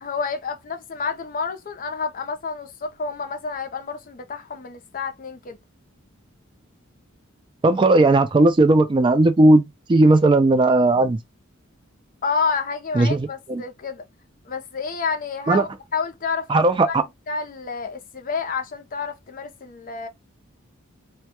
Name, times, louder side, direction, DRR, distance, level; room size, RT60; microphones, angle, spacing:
voice 1, 0.0-5.6 12.2-14.0 14.5-17.0 17.3-20.1, left 5 dB, 40° left, 0.5 m, -29 dB
voice 2, 7.6-11.2 13.0-13.6 15.5-15.6 16.5-17.0, right 2 dB, 25° right, 0.3 m, -17 dB
2.2 x 2.1 x 2.8 m
head